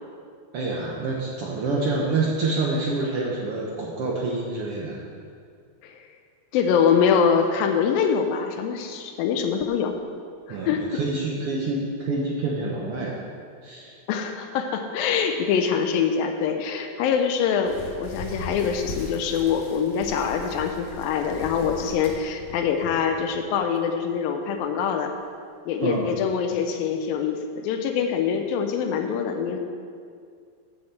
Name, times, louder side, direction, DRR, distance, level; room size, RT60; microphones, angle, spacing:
voice 1, 0.5-5.0 10.5-13.2 13.6-13.9 25.8-26.1, right 3 dB, 65° right, -3 dB, 1.4 m, -27 dB
voice 2, 6.5-10.0 10.5-11.0 14.1-25.1 25.7-29.6, left 7 dB, 90° left, 5 dB, 2.5 m, -24 dB
sound 1, 17.7-23.4 23.8-24.0 24.6-24.7 25.1-25.2, left 1 dB, 60° left, 2.4 m, -39 dB
8.4 x 7.2 x 7.4 m, 2.2 s
omnidirectional pair, 4.0 m